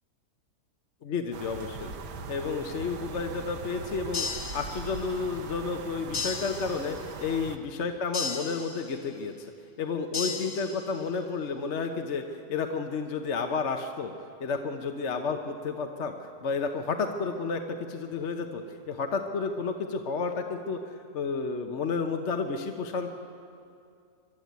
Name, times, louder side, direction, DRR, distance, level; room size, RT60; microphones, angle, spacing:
voice 1, 1.0-1.9 2.3-4.3 4.5-9.5 9.8-14.1 14.4-20.8 21.1-23.1, left 4 dB, 50° left, 5 dB, 1.1 m, -31 dB
sound 1, 1.3-7.6, right 4 dB, 90° right, 1.6 m, -40 dB
sound 2, 4.1-5.2 6.1-7.2 8.1-9.2 10.1-11.2, left 5 dB, 75° left, 2.2 m, -36 dB
23.5 x 13.0 x 9.3 m, 2.5 s
omnidirectional pair, 1.7 m